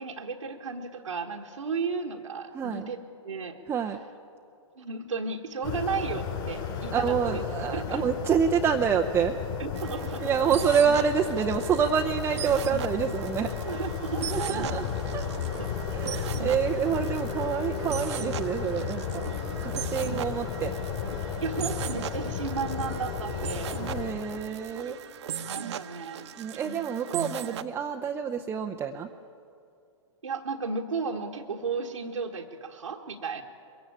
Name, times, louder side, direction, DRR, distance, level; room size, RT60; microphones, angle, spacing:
voice 1, 0.0-3.6 4.8-7.4 7.7-8.0 9.6-10.4 13.6-14.8 15.3-15.5 16.7-16.8 21.4-24.3 24.8-24.9 25.5-26.3 26.6-26.8 30.2-33.4, right 5 dB, 80° right, -1 dB, 1.5 m, -34 dB
voice 2, 2.5-2.9 3.7-4.0 6.9-9.3 10.2-13.5 14.3-14.8 15.1-15.2 15.9-19.2 19.6-20.7 23.8-25.0 26.4-29.1, right 7 dB, 15° right, 3 dB, 0.7 m, -27 dB
sound 1, 5.6-24.1, left 7 dB, 45° left, 5.0 m, -33 dB
sound 2, 9.7-27.6, right 8 dB, 60° right, 1.0 m, -38 dB
22.5 x 16.5 x 8.6 m, 2.5 s
figure-of-eight pair, 120°, 17 cm